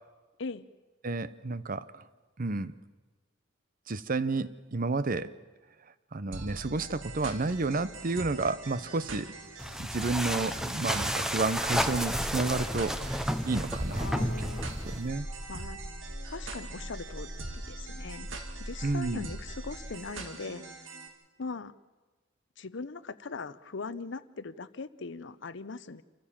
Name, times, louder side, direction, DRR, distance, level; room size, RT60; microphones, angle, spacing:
voice 1, 1.0-2.0 2.4-2.7 3.9-5.3 6.1-9.3 9.8-14.1 14.8-15.3 18.8-19.3, right 3 dB, 45° right, 15 dB, 0.8 m, -31 dB
sound 1, 6.3-21.1, right 3 dB, 75° right, 2.2 m, -44 dB
sound 2, 9.6-15.1, equal, 5° right, 0.9 m, -32 dB
sound 3, 11.7-19.9, equal, 25° right, 3.0 m, -42 dB
voice 2, 14.0-14.8 15.5-15.8 16.2-17.3 17.7-18.3 18.6-20.6 21.4-21.7 22.6-26.0, left 4 dB, 65° left, 16 dB, 0.8 m, -40 dB
27.5 x 14.5 x 7.3 m, 1.3 s
head